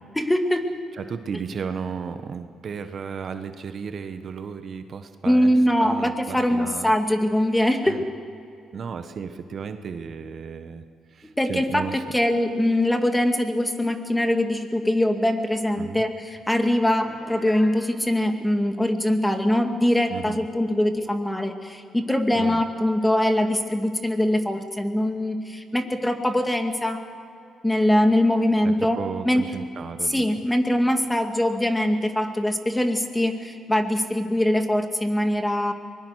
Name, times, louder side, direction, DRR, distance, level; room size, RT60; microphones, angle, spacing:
voice 1, 0.2-0.6 5.3-8.0 11.4-27.0 27.6-29.0 29.3-29.4 30.1-35.7, left 1 dB, 10° left, 6 dB, 2.1 m, -22 dB
voice 2, 1.0-6.9 7.8-8.0 8.7-12.0 15.8-16.0 20.1-20.5 22.3-22.6 28.6-30.2, right 6 dB, 50° right, 8 dB, 1.3 m, -34 dB
Piano, 17.0-17.9, left 3 dB, 40° left, 3.1 m, -44 dB
24.5 x 20.5 x 6.5 m, 2.5 s
cardioid pair, 90°, 0 cm